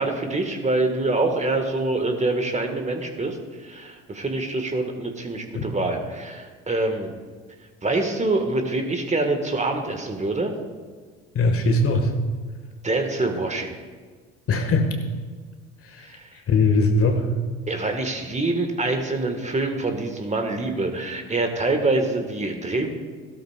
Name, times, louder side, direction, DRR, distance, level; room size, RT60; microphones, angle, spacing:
voice 1, 0.0-3.4 3.6-7.1 7.8-10.5 12.8-13.7 16.1-16.3 17.7-22.9, right 2 dB, 20° right, 4 dB, 1.6 m, -25 dB
voice 2, 11.3-12.1 14.5-14.9 15.8-16.1 16.5-17.3, left 3 dB, 45° left, 4 dB, 1.8 m, -20 dB
15.5 x 12.5 x 2.4 m, 1.5 s
hypercardioid pair, 60°, 32 cm